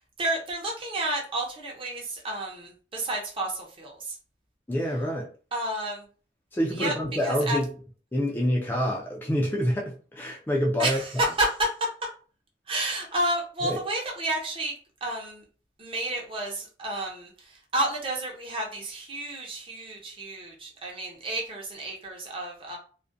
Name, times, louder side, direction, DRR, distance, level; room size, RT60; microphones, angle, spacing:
voice 1, 0.2-4.2 5.5-6.0 6.7-6.9 7.2-7.6 10.8-11.5 12.7-14.7 15.0-15.4 15.8-22.8, right 1 dB, 30° right, -1 dB, 0.7 m, -31 dB
voice 2, 4.7-5.3 6.5-7.7 8.1-11.0 13.6-13.8, equal, 10° left, -2 dB, 0.3 m, -27 dB
2.4 x 2.1 x 2.5 m, 0.39 s
head